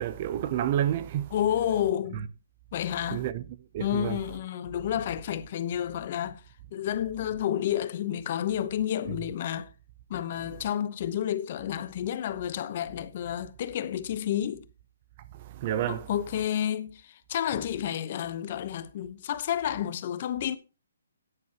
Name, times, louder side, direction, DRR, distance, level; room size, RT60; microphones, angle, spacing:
voice 1, 0.0-1.3 3.1-3.4 3.7-4.2 15.5-16.1, right 11 dB, 30° right, 0.6 m, -29 dB
voice 2, 1.3-2.3 2.7-3.2 3.8-6.4 6.7-9.7 10.1-14.6 15.9-20.6, left 10 dB, 35° left, 0.9 m, -30 dB
13.5 x 9.9 x 2.9 m
hypercardioid pair, 165°, 0 cm